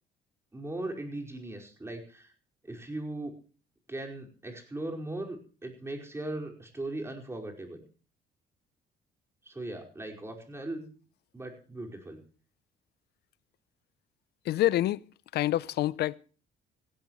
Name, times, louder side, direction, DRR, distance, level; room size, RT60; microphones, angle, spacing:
voice 1, 0.5-2.3 2.6-3.3 3.9-7.8 9.4-10.9 11.3-12.2, right 2 dB, 15° right, 5.0 m, -38 dB
voice 2, 14.4-15.0 15.3-16.1, left 14 dB, 70° left, 0.6 m, -26 dB
17.0 x 16.5 x 3.1 m
cardioid pair, 105°, 17 cm